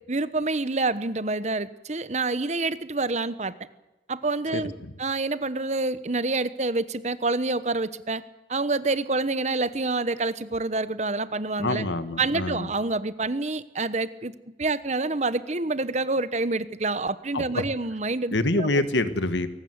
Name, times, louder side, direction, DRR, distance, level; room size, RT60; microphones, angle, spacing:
voice 1, 0.1-3.5 4.1-4.7 5.0-8.2 8.5-11.8 12.2-14.3 14.6-18.7, right 3 dB, 40° right, 15 dB, 1.0 m, -27 dB
voice 2, 4.5-4.9 11.6-12.7 17.3-17.6 18.3-19.5, left 2 dB, 75° left, 12 dB, 1.7 m, -26 dB
22.5 x 18.5 x 8.0 m, 1.0 s
head